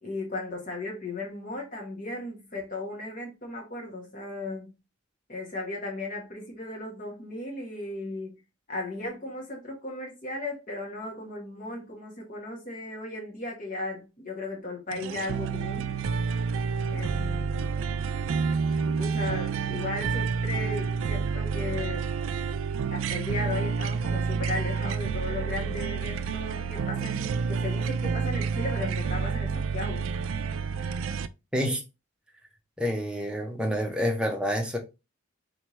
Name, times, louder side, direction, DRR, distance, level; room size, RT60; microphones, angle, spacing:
voice 1, 0.0-4.7 5.3-8.4 8.7-15.9 16.9-18.0 18.8-22.1 22.9-30.1, left 2 dB, 40° left, 1.5 m, -36 dB
sound 1, 14.9-31.3, right 5 dB, 80° right, 0.3 m, -29 dB
voice 2, 32.8-34.8, equal, 5° right, 0.7 m, -28 dB
3.6 x 3.3 x 3.1 m
head